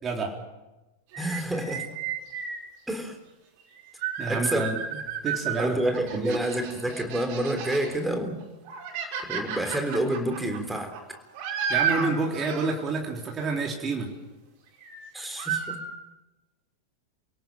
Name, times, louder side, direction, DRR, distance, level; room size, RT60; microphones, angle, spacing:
voice 1, 0.0-0.4 4.2-4.8 5.2-5.8 6.1-6.4 11.7-14.1, right 3 dB, 25° right, 1 dB, 3.7 m, -29 dB
sound 1, 1.1-2.6 3.6-5.6 5.9-8.0 8.4-12.7 14.8-15.1 15.4-15.8, right 7 dB, 45° right, 5.7 m, -32 dB
voice 2, 1.2-1.9 2.9-3.2 4.2-4.7 5.6-8.4 9.3-10.9 15.1-15.8, right 1 dB, 5° right, 5 dB, 3.6 m, -28 dB
28.5 x 17.5 x 7.5 m, 1.0 s
figure-of-eight pair, 90°, 0 cm